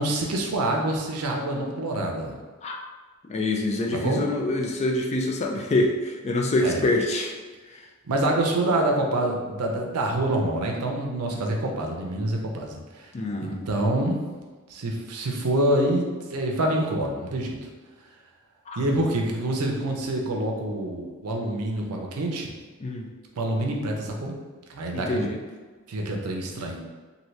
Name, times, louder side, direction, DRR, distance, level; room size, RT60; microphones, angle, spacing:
voice 1, 0.0-2.4 3.9-4.2 6.6-6.9 8.0-13.1 13.4-14.2 14.7-17.7 18.8-22.5 23.4-24.4 24.7-25.3 25.9-26.8, right 1 dB, 90° right, 1 dB, 0.6 m, -26 dB
voice 2, 3.3-7.4 7.7-7.8 11.3-11.4 13.1-13.7 18.7-18.8 22.8-23.1 24.9-25.4, left 2 dB, 30° left, 2 dB, 0.3 m, -26 dB
2.7 x 2.6 x 3.1 m, 1.3 s
head